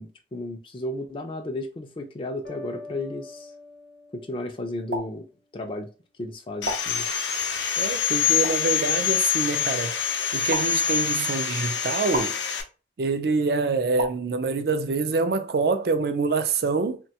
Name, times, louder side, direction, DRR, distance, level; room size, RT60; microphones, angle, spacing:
voice 1, 0.0-3.5 4.1-5.3 5.5-5.9 6.2-7.1, left 1 dB, 30° left, 0.3 m, -33 dB
sound 1, 2.4-5.3, left 3 dB, 65° left, 0.8 m, -44 dB
sound 2, 4.9-5.1 6.6-6.8 8.4-8.6 10.5-10.6 12.1-12.3 14.0-14.1, right 2 dB, 90° right, 0.8 m, -29 dB
Sawing, 6.6-12.6, left 8 dB, 90° left, 0.5 m, -25 dB
voice 2, 7.8-10.0 10.3-12.4 13.0-17.0, right 4 dB, 60° right, 0.4 m, -25 dB
3.0 x 2.2 x 2.7 m
head